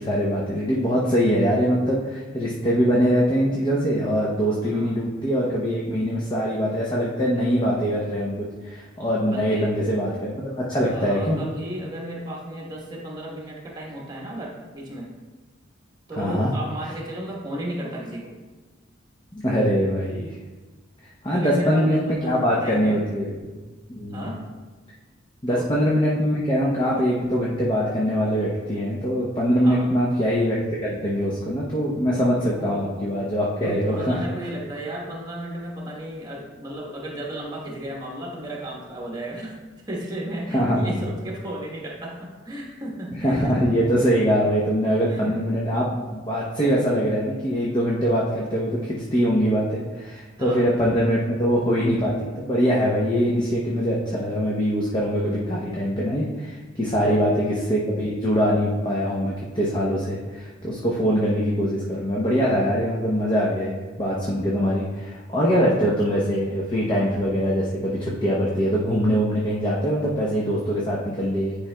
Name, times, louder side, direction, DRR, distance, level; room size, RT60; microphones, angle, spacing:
voice 1, 0.0-11.4 16.2-16.5 19.3-20.3 21.2-23.5 23.9-24.3 25.4-34.2 40.5-41.0 43.2-71.6, equal, 25° left, -5 dB, 0.7 m, -23 dB
voice 2, 4.6-4.9 9.2-9.7 10.9-15.1 16.1-18.3 21.3-23.0 24.1-24.4 25.5-25.7 29.6-29.9 32.3-32.9 33.5-39.6 39.9-43.6 45.1-45.4 50.4-50.7 56.9-57.3, right 1 dB, 20° right, -3 dB, 1.1 m, -34 dB
10.5 x 4.9 x 2.2 m, 1.3 s
head